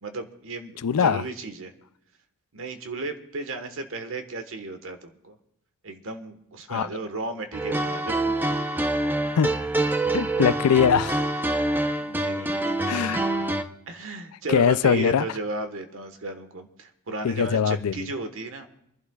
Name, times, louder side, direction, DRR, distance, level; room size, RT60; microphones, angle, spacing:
voice 1, 0.0-1.7 2.5-5.4 5.8-8.3 12.0-13.0 13.9-18.7, right 2 dB, 65° right, 1.4 m, -35 dB
voice 2, 0.8-1.2 6.7-6.9 9.4-9.5 10.1-11.3 12.8-13.2 14.5-15.2 17.2-18.1, left 7 dB, 90° left, 0.4 m, -21 dB
sound 1, 7.5-13.6, right 2 dB, 10° right, 0.7 m, -26 dB
28.0 x 11.5 x 2.4 m
head